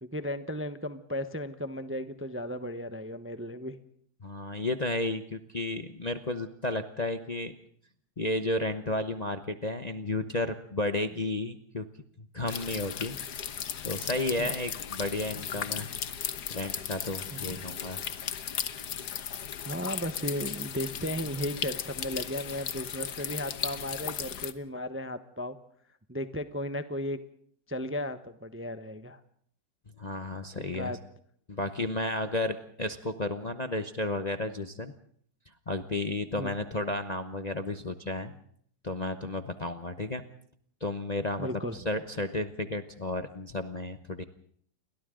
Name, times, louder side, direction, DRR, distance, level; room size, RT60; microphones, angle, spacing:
voice 1, 0.0-3.8 14.4-14.5 17.3-17.7 19.6-25.5 26.1-27.2 27.7-29.2 30.7-31.0 36.4-36.5 41.4-41.8, equal, 10° right, 10 dB, 0.7 m, -35 dB
voice 2, 4.2-7.5 8.2-11.9 12.2-13.2 13.5-15.9 16.5-18.0 30.0-31.0 31.5-34.9 35.7-38.3 38.8-40.2 40.8-44.2, left 2 dB, 30° left, 8 dB, 0.8 m, -32 dB
sound 1, 12.5-24.5, left 8 dB, 65° left, 1.6 m, -36 dB
29.5 x 23.0 x 3.8 m, 0.63 s
omnidirectional pair, 1.9 m